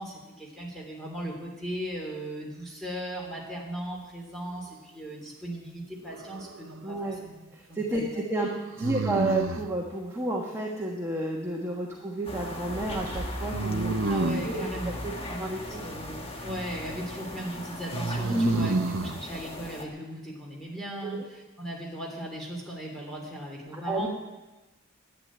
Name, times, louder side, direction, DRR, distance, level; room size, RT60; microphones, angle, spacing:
voice 1, 0.0-7.4 7.7-8.1 14.1-24.1, equal, ahead, -2 dB, 3.3 m, -37 dB
sound 1, 6.1-6.7 8.8-9.8 13.5-14.6 17.9-19.2, right 3 dB, 65° right, 0.7 m, -29 dB
voice 2, 6.8-7.2 7.5-8.5 8.8-14.1 14.4-14.6 15.0-15.8 18.3-18.5 21.0-21.2 23.7-24.1, right 2 dB, 15° right, -2 dB, 1.3 m, -31 dB
sound 2, 12.2-19.8, left 1 dB, 25° left, 1.4 m, -38 dB
11.5 x 9.5 x 8.8 m, 1.1 s
head